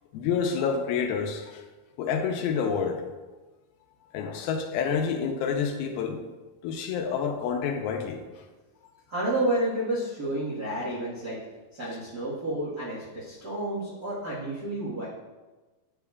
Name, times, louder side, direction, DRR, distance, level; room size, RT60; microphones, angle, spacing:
voice 1, 0.1-1.6 2.0-3.0 4.0-6.2 6.6-8.5, left 6 dB, 85° left, 4 dB, 2.6 m, -28 dB
voice 2, 9.1-11.4 11.7-15.1, right 1 dB, 70° right, -6 dB, 0.8 m, -30 dB
9.8 x 7.1 x 2.4 m, 1.2 s
omnidirectional pair, 4.4 m